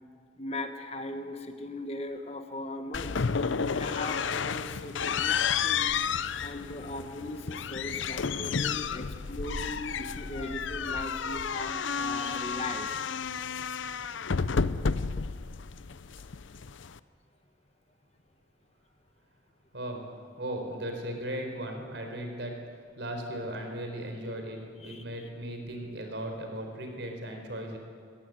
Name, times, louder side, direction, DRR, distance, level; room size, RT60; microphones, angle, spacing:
voice 1, 0.4-12.9 24.8-25.0, left 1 dB, 30° left, 7 dB, 1.3 m, -39 dB
sound 1, 2.9-17.0, left 6 dB, 80° left, 0.6 m, -31 dB
voice 2, 19.7-20.1 20.4-22.6 23.0-27.8, right 1 dB, 65° right, 4 dB, 4.5 m, -37 dB
22.0 x 17.5 x 9.5 m, 2.1 s
head